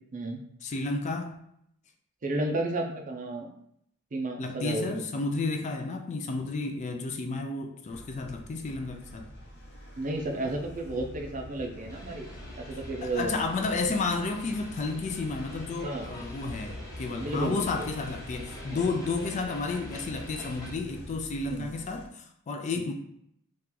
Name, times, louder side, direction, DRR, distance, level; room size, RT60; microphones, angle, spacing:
voice 1, 0.6-1.3 4.4-9.3 13.0-22.9, left 3 dB, 35° left, 4 dB, 0.3 m, -32 dB
voice 2, 2.2-3.5 4.1-5.0 10.0-12.3 12.6-13.3 15.8-16.1 17.2-17.9 18.7-18.8 21.5-21.7 22.8-22.9, right 2 dB, 35° right, 3 dB, 0.5 m, -32 dB
sound 1, 7.9-22.1, left 1 dB, 50° left, 0.7 m, -46 dB
sound 2, 11.9-20.7, left 1 dB, 15° left, 0.7 m, -45 dB
2.9 x 2.5 x 3.7 m, 0.72 s
head